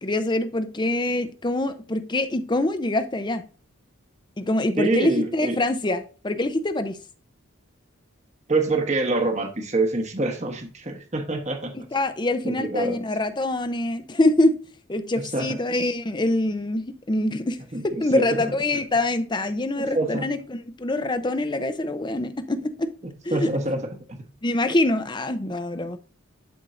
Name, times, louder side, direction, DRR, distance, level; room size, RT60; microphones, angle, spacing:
voice 1, 0.0-3.4 4.4-7.0 11.7-14.5 14.9-17.6 17.8-22.9 23.2-23.5 24.4-26.0, left 2 dB, 20° left, 0.6 m, -25 dB
voice 2, 4.8-5.6 8.5-11.7 12.4-13.0 15.2-15.6 17.7-18.5 19.8-20.3 23.3-24.2, right 2 dB, 35° right, 1.1 m, -26 dB
11.5 x 4.5 x 2.5 m
head